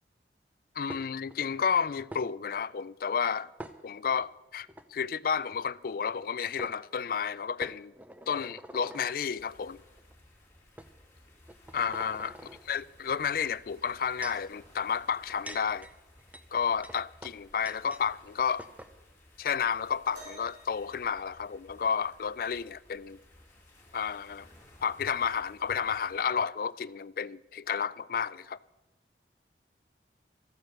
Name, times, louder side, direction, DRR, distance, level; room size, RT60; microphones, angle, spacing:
voice 1, 0.8-3.5 3.8-7.9 8.3-9.8 11.7-12.4 12.6-15.9 16.5-18.7 19.4-23.2 23.9-24.5 24.8-28.6, left 6 dB, 50° left, 0.3 m, -31 dB
sound 1, 0.9-1.4 2.1-2.3 3.6-4.3 4.7-4.9 6.2-6.3 6.6-6.8 7.6-9.2 10.0-10.1 10.8-10.9 11.4-12.6 13.7-14.5 15.1-18.1 18.3-18.4 18.6-18.9, right 1 dB, 10° right, 0.6 m, -46 dB
sound 2, 9.4-26.2, left 1 dB, 15° left, 2.7 m, -58 dB
sound 3, 20.1-22.0 23.7-23.8 24.6-24.8 25.7-25.8, right 1 dB, 80° right, 4.4 m, -52 dB
14.0 x 9.3 x 6.6 m
head